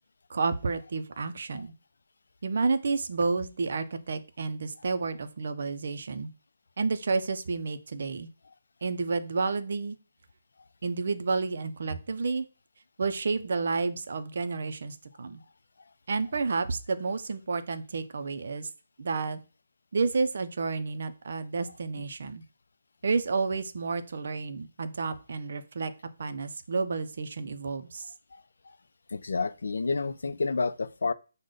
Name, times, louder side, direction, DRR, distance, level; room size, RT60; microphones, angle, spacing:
voice 1, 0.3-1.7 2.4-6.3 6.8-8.3 8.8-10.0 10.8-12.5 13.0-15.4 16.1-18.7 19.0-19.4 19.9-22.4 23.0-25.9 26.2-28.1, right 4 dB, 55° right, 0.5 m, -30 dB
voice 2, 29.1-31.1, left 4 dB, 70° left, 0.4 m, -29 dB
6.3 x 2.1 x 3.8 m
hypercardioid pair, 170°, 0 cm